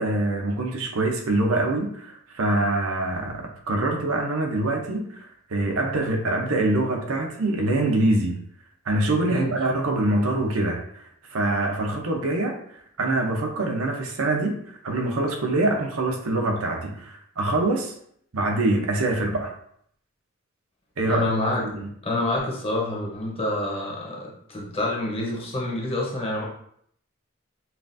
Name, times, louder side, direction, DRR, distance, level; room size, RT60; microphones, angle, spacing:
voice 1, 0.0-8.4 8.9-12.6 13.0-17.9 18.3-19.5 21.0-21.3 21.6-21.9, right 2 dB, 80° right, 2 dB, 0.8 m, -24 dB
voice 2, 21.1-21.6 22.0-26.5, left 1 dB, 25° left, -3 dB, 0.9 m, -27 dB
5.7 x 2.4 x 2.6 m, 0.66 s
head